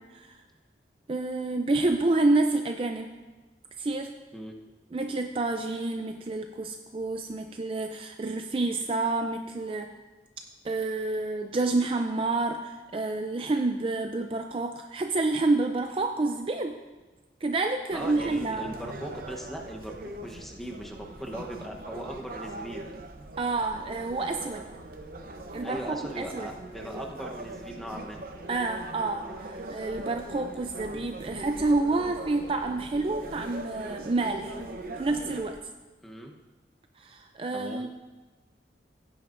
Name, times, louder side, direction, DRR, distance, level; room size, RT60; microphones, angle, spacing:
voice 1, 1.1-3.1 3.8-4.1 4.9-9.9 10.6-16.8 17.4-18.6 23.4-24.6 25.5-26.5 28.5-34.6 34.9-35.6 37.0-37.9, right 2 dB, 30° right, 5 dB, 0.4 m, -28 dB
voice 2, 17.9-22.8 25.6-28.2 36.0-36.3 37.5-37.9, equal, ahead, 0 dB, 0.9 m, -39 dB
sound 1, 17.9-35.5, right 2 dB, 55° right, 0.8 m, -41 dB
16.0 x 9.2 x 2.6 m, 1.2 s
head